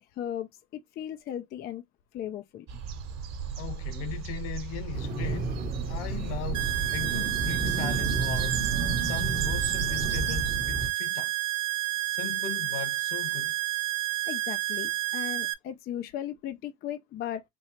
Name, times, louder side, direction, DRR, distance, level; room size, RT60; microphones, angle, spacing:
voice 1, 0.2-0.5 0.7-1.8 2.1-2.7 14.3-17.4, left 10 dB, 25° left, 0.4 m, -36 dB
sound 1, 2.7-10.5, right 7 dB, 40° right, 1.1 m, -36 dB
voice 2, 3.6-5.6 5.9-8.7 9.0-11.4 12.1-13.5, left 11 dB, 60° left, 1.3 m, -38 dB
sound 2, 4.9-10.9, right 3 dB, 20° right, 0.8 m, -32 dB
sound 3, 6.5-15.5, right 17 dB, 70° right, 0.6 m, -30 dB
4.3 x 2.4 x 2.9 m
supercardioid pair, 120°, 39 cm